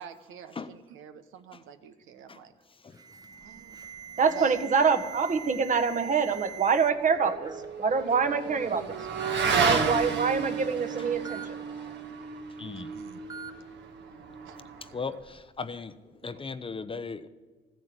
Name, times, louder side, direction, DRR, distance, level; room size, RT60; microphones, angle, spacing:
voice 1, 0.0-2.5 3.4-3.7 4.3-4.6 12.9-13.6 14.4-14.8, right 6 dB, 85° right, 9 dB, 1.0 m, -47 dB
Alarm, 2.9-6.9 7.2-7.7 8.5-8.6 9.2-9.4 11.3-11.5 13.3-13.5, right 7 dB, 20° right, 1.1 m, -42 dB
voice 2, 4.2-7.5 7.8-9.0 9.6-11.6, right 5 dB, 40° right, 7 dB, 1.3 m, -25 dB
Motorcycle / Accelerating revving vroom, 6.5-15.3, right 5 dB, 60° right, 1.7 m, -32 dB
voice 3, 12.6-12.9 14.8-17.3, left 4 dB, 25° left, 13 dB, 0.7 m, -38 dB
14.5 x 9.7 x 7.9 m, 1.4 s
cardioid pair, 90°, 20 cm